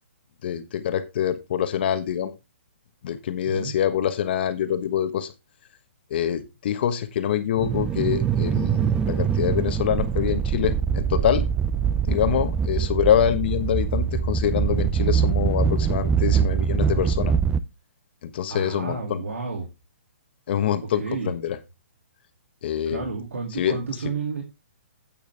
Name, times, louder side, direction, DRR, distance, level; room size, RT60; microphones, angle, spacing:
voice 1, 0.4-2.3 3.0-5.3 6.1-11.4 12.1-17.3 18.2-19.2 20.5-21.6 22.6-23.1 23.6-23.8, left 9 dB, 50° left, 11 dB, 1.3 m, -25 dB
sound 1, 7.6-17.6, right 7 dB, 10° right, 0.5 m, -23 dB
voice 2, 18.5-19.7 20.9-21.3 22.9-24.4, right 4 dB, 85° right, 2 dB, 2.6 m, -31 dB
8.7 x 8.6 x 3.4 m, 0.24 s
hypercardioid pair, 150°, 7 cm